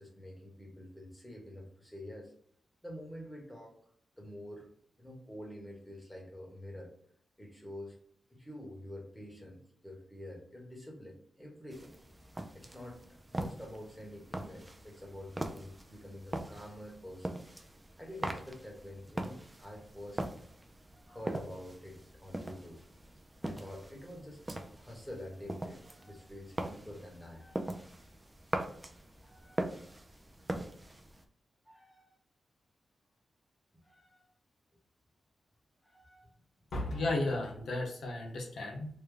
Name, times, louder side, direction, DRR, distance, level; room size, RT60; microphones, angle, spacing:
voice 1, 0.0-2.3 2.8-3.7 4.2-6.9 7.4-8.0 8.3-12.0 12.5-17.4 18.0-20.2 20.9-22.8 23.4-24.4 24.7-27.8 29.2-29.7 31.6-32.1 33.8-34.3 35.8-36.3 38.1-38.3, left 1 dB, 5° left, -1 dB, 1.1 m, -48 dB
sound 1, 11.7-31.2, right 1 dB, 15° right, 0.4 m, -42 dB
voice 2, 36.7-38.9, left 2 dB, 80° left, 0 dB, 0.9 m, -34 dB
3.3 x 2.2 x 3.7 m, 0.62 s
wide cardioid pair, 125°, 0 cm